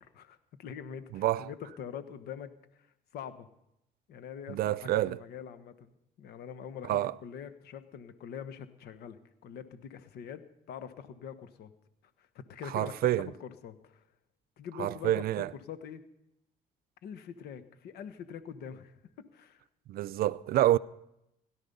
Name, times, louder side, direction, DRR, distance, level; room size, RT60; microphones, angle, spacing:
voice 1, 0.0-2.9 3.1-3.5 4.1-11.7 12.2-14.0 14.6-16.0 17.0-19.6, left 8 dB, 70° left, 1.3 m, -44 dB
voice 2, 1.1-1.5 4.5-5.2 6.8-7.1 12.7-13.3 14.8-15.5 19.9-20.8, right 14 dB, 65° right, 0.5 m, -28 dB
17.0 x 12.0 x 5.5 m
cardioid pair, 110°, 17 cm